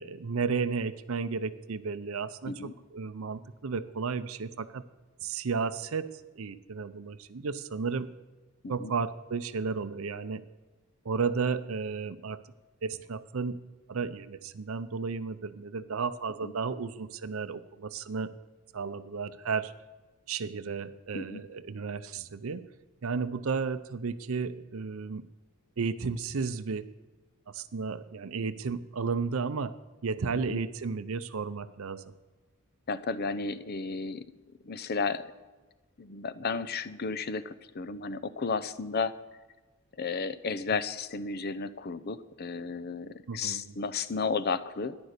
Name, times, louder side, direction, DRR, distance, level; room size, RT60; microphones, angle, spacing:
voice 1, 0.0-4.8 5.2-8.1 8.7-10.4 11.0-12.4 12.8-13.6 13.9-18.3 18.7-19.7 20.3-22.6 23.0-25.2 25.8-26.9 27.5-29.8 30.0-32.0 43.3-43.7, right 5 dB, 70° right, 12 dB, 0.6 m, -33 dB
voice 2, 32.9-34.2 34.6-35.3 36.0-39.1 40.0-45.0, left 4 dB, 45° left, 14 dB, 0.7 m, -33 dB
13.5 x 10.5 x 6.7 m, 1.2 s
head